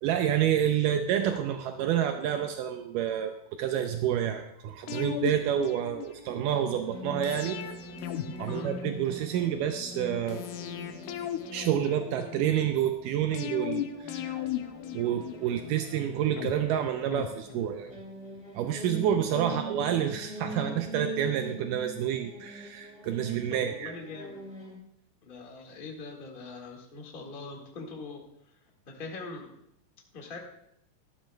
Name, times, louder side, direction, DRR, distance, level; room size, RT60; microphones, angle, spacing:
voice 1, 0.0-7.6 8.4-10.5 11.5-14.3 14.9-17.9 18.6-23.9, right 10 dB, 80° right, 6 dB, 2.1 m, -29 dB
sound 1, 4.9-6.4 7.2-9.4 10.3-12.5 13.3-15.7 16.4-18.0 18.3-18.4, left 11 dB, 80° left, 1.9 m, -37 dB
sound 2, 6.7-24.8, equal, 5° right, 1.9 m, -43 dB
voice 2, 23.5-24.4 25.2-28.2 28.9-29.5 30.1-30.4, left 3 dB, 35° left, 0 dB, 0.9 m, -42 dB
15.0 x 12.0 x 2.2 m, 0.76 s
omnidirectional pair, 4.0 m